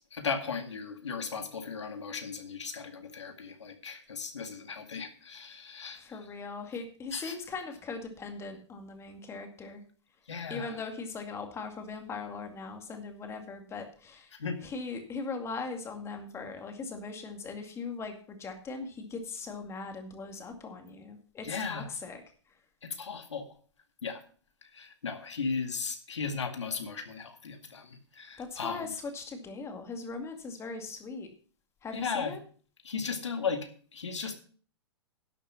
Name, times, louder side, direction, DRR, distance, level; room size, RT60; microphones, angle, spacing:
voice 1, 0.0-6.0 7.1-7.4 10.3-10.8 14.3-14.6 21.4-21.9 22.8-23.5 24.0-24.2 24.6-28.9 31.9-32.4 32.8-34.3, left 5 dB, 80° left, 6 dB, 2.2 m, -36 dB
voice 2, 5.9-9.8 10.5-14.3 14.6-22.2 28.4-31.3 31.8-32.4, left 4 dB, 20° left, 5 dB, 2.2 m, -40 dB
11.5 x 7.2 x 5.8 m, 0.43 s
hypercardioid pair, 115°, 15 cm